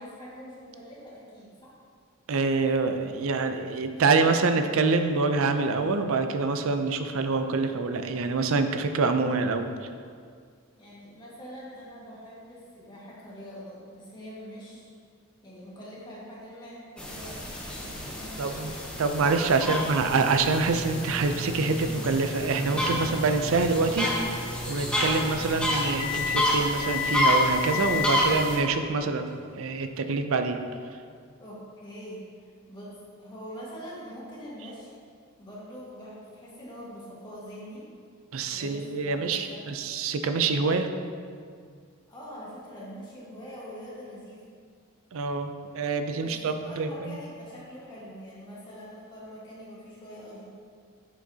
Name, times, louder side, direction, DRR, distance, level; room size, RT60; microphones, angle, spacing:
voice 1, 0.0-1.8 10.8-14.9 15.4-18.7 19.6-19.8 31.4-35.0 35.4-37.9 38.5-39.8 42.1-44.5 46.1-50.5, equal, 20° left, -7 dB, 1.6 m, -44 dB
voice 2, 2.3-9.7 18.4-18.7 19.0-30.6 38.3-40.9 45.1-47.2, right 4 dB, 65° right, 7 dB, 0.5 m, -26 dB
sound 1, 17.0-28.6, left 1 dB, 5° left, 0.7 m, -29 dB
sound 2, 19.5-29.9, left 4 dB, 50° left, 1.1 m, -36 dB
9.0 x 5.1 x 2.8 m, 2.1 s
head